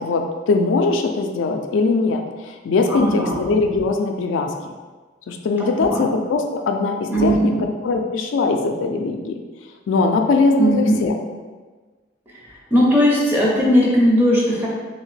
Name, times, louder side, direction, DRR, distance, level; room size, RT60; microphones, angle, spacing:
voice 1, 0.0-4.5 5.3-7.5 7.8-9.4 9.9-11.1, left 3 dB, 80° left, 4 dB, 0.3 m, -20 dB
voice 2, 2.9-3.4 5.8-6.1 7.1-7.6 10.6-11.0 12.7-14.7, equal, 10° right, -4 dB, 0.6 m, -18 dB
2.9 x 2.8 x 3.2 m, 1.4 s
head